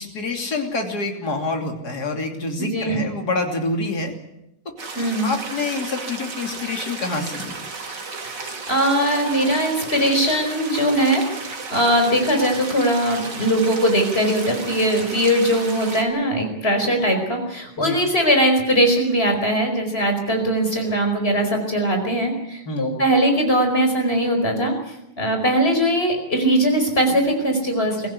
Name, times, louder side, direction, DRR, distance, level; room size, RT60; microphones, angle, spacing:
voice 1, 0.0-4.1 5.2-7.6 17.8-18.0 22.7-22.9, left 3 dB, 50° left, 3 dB, 3.5 m, -27 dB
voice 2, 2.6-3.0 4.9-5.3 8.3-28.1, right 1 dB, 30° left, 4 dB, 5.1 m, -20 dB
sound 1, 4.8-16.0, right 4 dB, 60° right, 3.2 m, -34 dB
23.5 x 15.5 x 9.8 m, 0.84 s
omnidirectional pair, 2.2 m